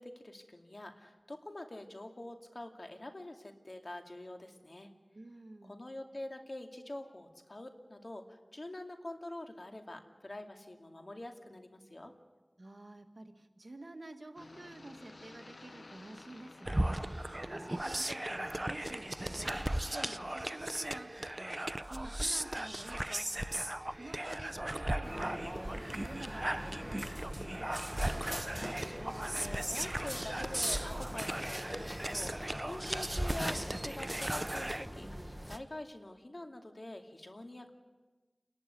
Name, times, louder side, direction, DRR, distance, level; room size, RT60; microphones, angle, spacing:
voice 1, 0.0-4.9 5.6-12.1 28.8-35.1 35.4-37.7, left 1 dB, 55° left, 4 dB, 2.4 m, -46 dB
voice 2, 5.1-5.8 12.6-28.1, right 2 dB, 65° right, 5 dB, 1.9 m, -50 dB
sound 1, 14.4-20.4, left 2 dB, 85° left, 0.8 m, -54 dB
sound 2, 16.7-34.9, right 1 dB, 30° right, 0.6 m, -37 dB
sound 3, 25.0-35.6, equal, 5° right, 1.4 m, -42 dB
29.0 x 11.5 x 9.5 m, 1.2 s
wide cardioid pair, 40°, 0 cm